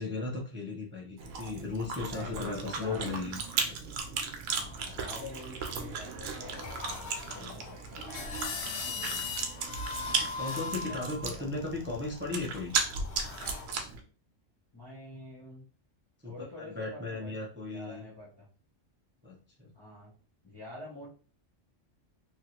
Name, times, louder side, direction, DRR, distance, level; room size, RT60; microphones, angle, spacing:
voice 1, 0.0-3.8 8.9-9.3 10.4-12.7 16.2-18.0 19.2-19.7, left 3 dB, 15° right, -2 dB, 0.4 m, -36 dB
Chewing mastication, 1.2-14.0, right 5 dB, 80° right, 1.0 m, -36 dB
voice 2, 2.0-3.0 4.5-8.2 10.9-11.4 14.7-15.6 16.2-17.4 17.7-18.5 19.7-20.1 20.4-21.1, left 2 dB, 25° left, -7 dB, 0.8 m, -46 dB
sound 1, 4.5-5.5 6.2-13.7, left 5 dB, 60° left, 0.9 m, -40 dB
3.0 x 2.5 x 2.8 m, 0.39 s
omnidirectional pair, 1.3 m